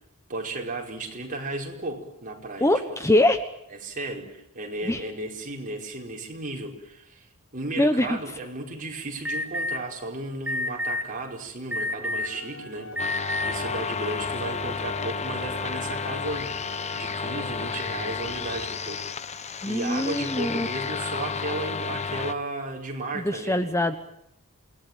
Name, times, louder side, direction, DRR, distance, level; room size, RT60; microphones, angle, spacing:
voice 1, 0.3-3.0 3.7-7.3 7.5-23.6, right 2 dB, 40° right, 1 dB, 5.0 m, -35 dB
voice 2, 2.6-3.4 4.8-5.0 7.8-8.2 19.6-20.7 23.1-23.9, left 1 dB, 15° left, 9 dB, 1.1 m, -23 dB
Alarm, 9.2-9.8 10.5-11.0 11.7-12.4 12.9-13.5, left 1 dB, 5° right, 3.1 m, -28 dB
sound 1, 12.0-18.8, left 2 dB, 70° left, 3.7 m, -42 dB
sound 2, 13.0-22.3, left 5 dB, 30° left, 1.0 m, -32 dB
28.5 x 19.0 x 9.3 m, 0.76 s
head